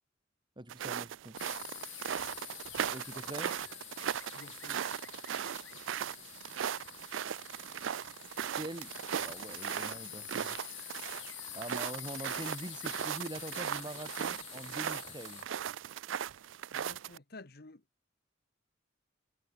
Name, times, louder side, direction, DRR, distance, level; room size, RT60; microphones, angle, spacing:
voice 1, 0.6-1.4 2.9-3.5 8.6-8.9 9.2-10.6 11.5-15.5, right 1 dB, 25° right, 1.6 m, -43 dB
sound 1, 0.7-17.2, right 9 dB, 90° right, 0.4 m, -38 dB
sound 2, 1.4-15.4, left 15 dB, 75° left, 6.0 m, -47 dB
voice 2, 4.3-4.8 16.7-17.8, left 3 dB, 55° left, 1.6 m, -51 dB
head